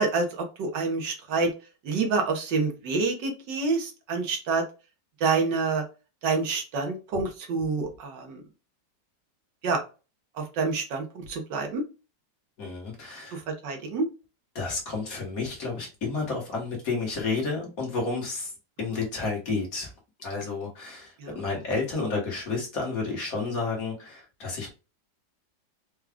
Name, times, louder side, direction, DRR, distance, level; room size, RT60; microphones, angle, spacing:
voice 1, 0.0-1.5 1.8-4.6 5.2-5.8 6.2-8.4 9.6-9.8 10.4-11.8 13.3-14.1 18.9-19.0 21.2-21.4, right 4 dB, 75° right, 4 dB, 1.6 m, -27 dB
voice 2, 12.6-13.4 14.6-18.5 18.8-19.9 20.2-24.7, left 4 dB, 50° left, -1 dB, 1.7 m, -31 dB
4.7 x 2.3 x 3.5 m, 0.31 s
omnidirectional pair, 2.0 m